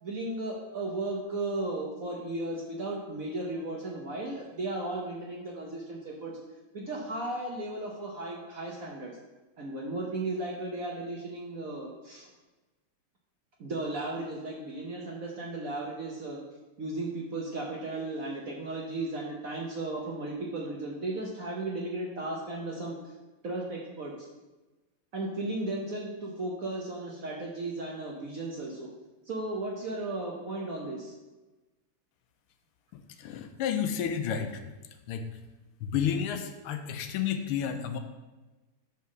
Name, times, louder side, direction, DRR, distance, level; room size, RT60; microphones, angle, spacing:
voice 1, 0.0-6.3 6.7-9.1 9.6-12.3 13.6-16.4 16.8-23.0 23.4-24.3 25.1-28.9 29.3-31.1, right 2 dB, 60° right, -2 dB, 0.9 m, -35 dB
voice 2, 32.9-34.6 35.1-35.3 35.8-38.0, left 8 dB, 90° left, 7 dB, 1.6 m, -31 dB
5.7 x 4.6 x 6.0 m, 1.2 s
omnidirectional pair, 2.4 m